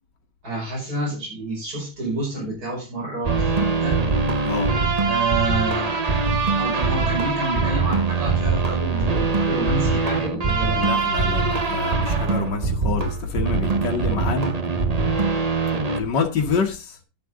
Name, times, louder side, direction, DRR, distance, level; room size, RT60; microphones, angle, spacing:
voice 1, 0.4-4.0 5.1-5.9 6.5-10.9, right 2 dB, 55° right, 6.1 m, -29 dB
sound 1, 3.2-16.0, right 4 dB, 30° right, 0.8 m, -22 dB
voice 2, 10.7-14.6 15.9-17.0, left 4 dB, 75° left, 2.0 m, -26 dB
10.5 x 10.0 x 3.7 m
omnidirectional pair, 1.9 m